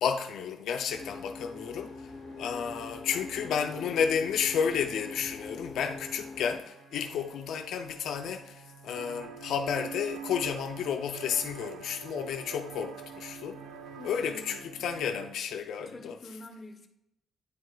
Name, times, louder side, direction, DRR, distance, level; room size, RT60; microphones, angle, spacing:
voice 1, 0.0-1.9 2.4-13.6 14.0-16.1, left 7 dB, 75° left, 0.4 m, -31 dB
sound 1, 0.9-6.6, left 3 dB, 50° left, 0.8 m, -44 dB
sound 2, 0.9-15.4, right 4 dB, 30° right, 1.1 m, -52 dB
voice 2, 3.1-4.0 14.0-14.9 15.9-16.9, left 2 dB, 25° left, 0.9 m, -48 dB
sound 3, 9.0-14.6, right 7 dB, 85° right, 0.5 m, -45 dB
9.8 x 4.6 x 2.2 m
cardioid pair, 90°, 0 cm